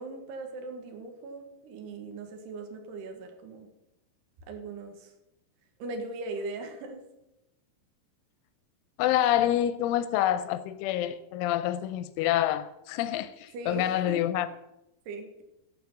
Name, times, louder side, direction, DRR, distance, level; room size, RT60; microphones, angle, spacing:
voice 1, 0.0-3.7 4.5-5.1 5.8-7.0 13.5-14.2 15.1-15.4, right 3 dB, 65° right, 3.2 m, -39 dB
voice 2, 9.0-14.5, left 12 dB, 80° left, 2.9 m, -27 dB
12.0 x 6.8 x 7.2 m
omnidirectional pair, 5.8 m